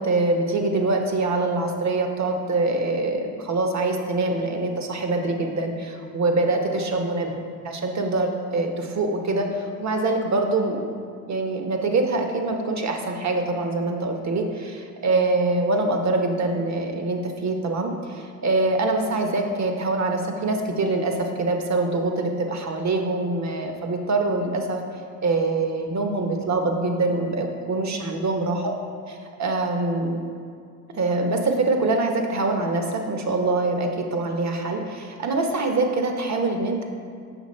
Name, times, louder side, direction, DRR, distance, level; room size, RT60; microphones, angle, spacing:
voice 1, 0.0-10.9 11.3-24.8 25.2-28.6 29.1-30.2 30.9-36.8, right 2 dB, 40° right, 4 dB, 1.1 m, -24 dB
7.1 x 5.8 x 4.3 m, 2.3 s
supercardioid pair, 65°, 41 cm